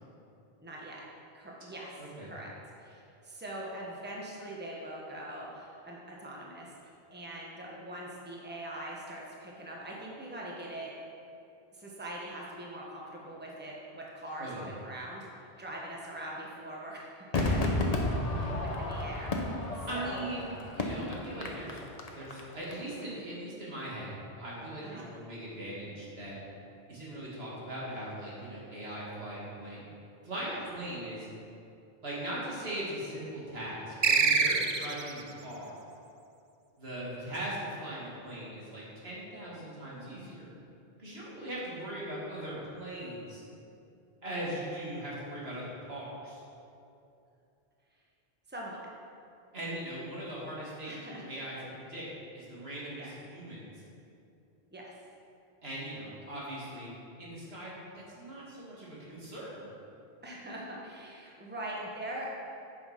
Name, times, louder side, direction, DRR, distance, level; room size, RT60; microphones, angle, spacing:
voice 1, 0.6-1.1 1.3-1.9 2.2-2.5 2.8-6.7 7.1-10.9 11.7-20.3 24.8-25.1 30.5-30.6 48.5-48.9 50.8-51.3 53.0-53.1 54.7-54.9 60.2-62.3, right 1 dB, 10° right, -3 dB, 1.2 m, -42 dB
voice 2, 2.0-2.3 14.4-14.7 19.9-21.8 22.1-26.4 26.9-29.8 30.2-31.3 32.0-35.7 36.8-40.5 41.0-43.4 44.2-46.4 49.5-51.6 51.9-52.1 52.3-53.7 55.6-56.9 57.2-59.7, right 1 dB, 80° right, -7 dB, 2.5 m, -40 dB
Crowd / Fireworks, 17.3-22.7 23.0-23.1, left 2 dB, 40° left, 0.9 m, -32 dB
sound 1, 34.0-35.2, right 5 dB, 50° right, 0.3 m, -25 dB
8.7 x 6.2 x 5.1 m, 2.7 s
omnidirectional pair, 1.0 m